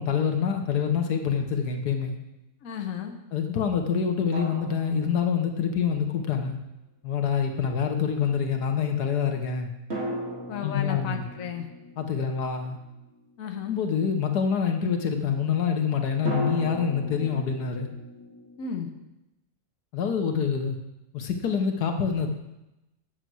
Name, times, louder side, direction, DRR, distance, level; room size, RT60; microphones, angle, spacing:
voice 1, 0.0-2.1 3.3-6.6 7.0-9.7 10.6-11.2 12.0-12.8 13.7-17.9 19.9-20.8 21.1-22.3, left 7 dB, 80° left, 5 dB, 1.5 m, -26 dB
voice 2, 2.6-3.2 10.5-11.7 13.4-13.8 18.6-18.9, left 7 dB, 60° left, 4 dB, 1.3 m, -34 dB
sound 1, 4.3-5.8 9.9-13.5 16.3-19.0, right 1 dB, 40° right, 2.6 m, -37 dB
8.3 x 8.0 x 6.1 m, 0.92 s
omnidirectional pair, 1.7 m